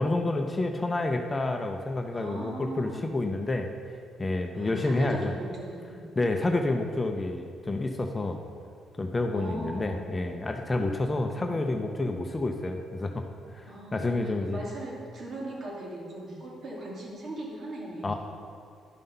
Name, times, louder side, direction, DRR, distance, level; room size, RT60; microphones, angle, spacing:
voice 1, 0.0-3.7 4.2-5.3 6.2-8.4 9.0-13.2 13.5-13.6 13.9-14.6 18.0-18.1, left 2 dB, 20° left, 4 dB, 0.7 m, -29 dB
voice 2, 2.1-3.0 4.5-6.0 9.3-10.0 11.2-11.7 13.7-18.2, right 1 dB, 55° right, -3 dB, 2.5 m, -39 dB
11.0 x 5.6 x 5.5 m, 2.3 s
cardioid pair, 90°, 0 cm